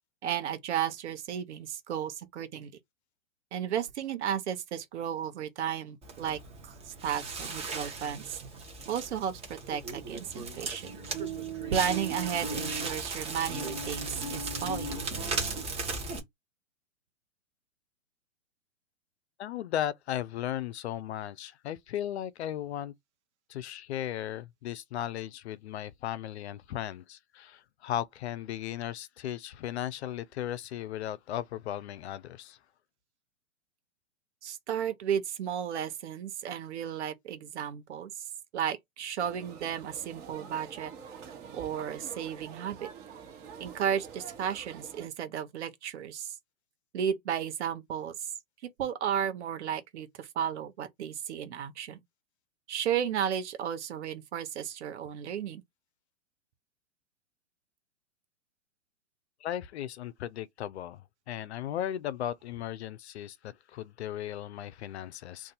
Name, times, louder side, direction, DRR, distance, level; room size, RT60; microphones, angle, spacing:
voice 1, 0.2-2.7 3.5-6.4 7.0-8.4 8.9-9.4 9.7-10.9 11.7-15.0 34.4-38.1 38.5-40.9 41.5-42.9 43.6-46.3 46.9-48.1 48.8-52.0 52.7-55.6, right 9 dB, 55° right, 0.9 m, -33 dB
Crackle, 6.0-16.2, right 3 dB, 15° right, 1.0 m, -36 dB
voice 2, 19.4-22.9 23.5-32.6 59.4-65.5, left 11 dB, 55° left, 0.5 m, -36 dB
sound 1, 39.2-45.1, right 6 dB, 35° right, 1.4 m, -46 dB
2.6 x 2.6 x 3.9 m
hypercardioid pair, 120°, 40 cm